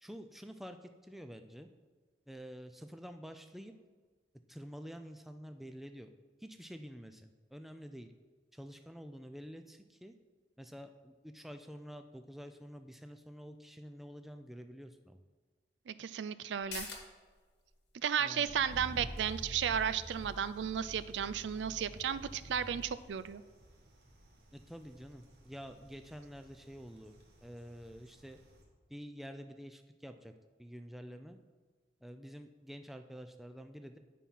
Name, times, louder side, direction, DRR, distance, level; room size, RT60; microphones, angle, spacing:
voice 1, 0.0-1.7 2.3-3.7 4.5-6.1 6.4-8.1 8.5-10.1 10.6-15.2 18.2-18.5 24.5-27.1 27.4-28.4 28.9-30.3 30.6-31.4 32.0-34.0, equal, ahead, 7 dB, 0.3 m, -48 dB
voice 2, 15.9-16.9 18.0-23.4, right 8 dB, 90° right, 15 dB, 0.4 m, -34 dB
sound 1, 16.5-23.6 24.0-24.1, left 5 dB, 75° left, 1.3 m, -53 dB
sound 2, 18.4-28.6, right 1 dB, 70° right, 1.5 m, -50 dB
9.1 x 4.3 x 5.5 m, 1.4 s
head